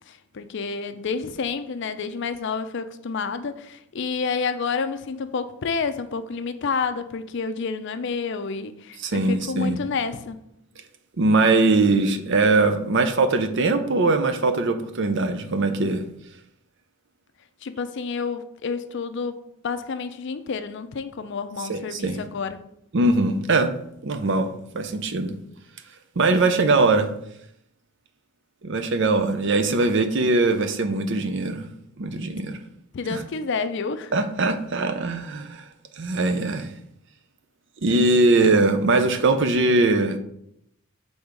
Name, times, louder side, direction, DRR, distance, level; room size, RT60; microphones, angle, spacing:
voice 1, 0.1-10.4 17.6-22.6 29.8-30.0 32.9-34.1, left 5 dB, 55° left, 0.4 m, -29 dB
voice 2, 9.0-9.8 11.2-16.1 21.7-22.2 22.9-23.7 24.0-25.3 26.2-27.1 28.6-31.7 32.0-32.6 33.1-33.2 34.1-35.6 36.0-36.7 37.8-40.2, right 3 dB, 60° right, 0.6 m, -21 dB
6.3 x 3.5 x 5.1 m
head